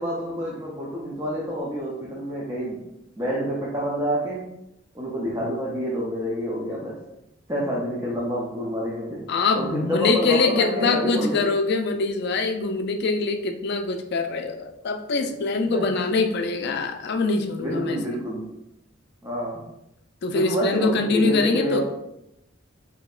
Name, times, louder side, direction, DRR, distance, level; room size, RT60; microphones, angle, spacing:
voice 1, 0.0-2.8 3.2-4.5 4.9-7.0 7.5-11.5 15.6-15.9 17.6-18.5 19.2-19.7 20.3-21.8, equal, 15° right, -5 dB, 0.6 m, -28 dB
voice 2, 9.3-18.0 20.2-21.8, left 3 dB, 55° left, 6 dB, 0.4 m, -24 dB
5.0 x 2.8 x 2.4 m, 0.85 s
head